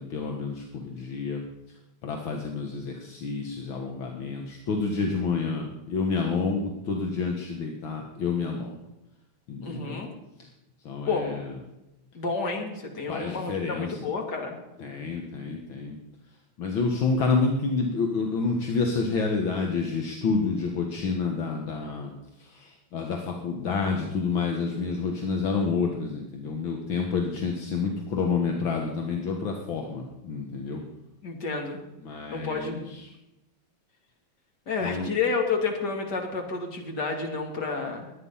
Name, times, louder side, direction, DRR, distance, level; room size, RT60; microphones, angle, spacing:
voice 1, 0.0-1.4 2.0-8.8 9.5-10.0 10.9-11.5 13.1-14.0 14.8-16.0 16.6-22.1 22.4-30.8 32.0-33.1 34.8-35.1, left 4 dB, 70° left, 2 dB, 2.2 m, -29 dB
voice 2, 9.6-10.1 11.1-11.3 12.1-14.6 31.2-31.8 32.3-32.8 34.7-38.1, left 4 dB, 50° left, 2 dB, 2.9 m, -30 dB
21.5 x 9.4 x 5.6 m, 0.95 s
omnidirectional pair, 2.3 m